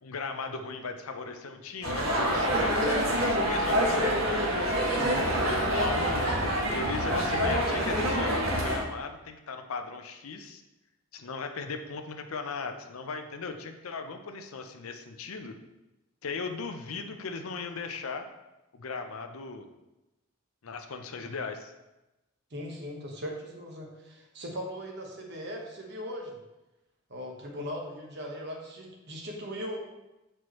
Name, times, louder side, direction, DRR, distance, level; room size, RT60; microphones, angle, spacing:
voice 1, 0.0-4.1 5.5-10.6 11.1-15.5 16.2-18.2 18.7-19.7 20.6-21.7, left 4 dB, 80° left, 6 dB, 0.6 m, -37 dB
sound 1, 1.8-8.8, equal, 80° right, 1.4 m, -26 dB
voice 2, 4.9-5.3 22.5-26.4 27.1-29.8, equal, 50° right, 1 dB, 1.1 m, -39 dB
7.9 x 4.4 x 3.1 m, 0.99 s
head